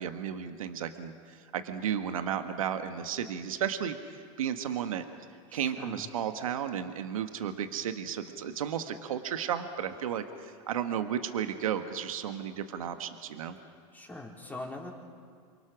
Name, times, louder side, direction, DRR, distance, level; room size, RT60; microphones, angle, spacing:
voice 1, 0.0-5.0 5.5-13.6, right 9 dB, 80° right, 8 dB, 1.5 m, -33 dB
voice 2, 5.5-6.1 13.6-13.7 13.9-14.9, left 2 dB, 10° left, -1 dB, 4.2 m, -42 dB
28.5 x 24.0 x 6.2 m, 2.1 s
hypercardioid pair, 110°, 17 cm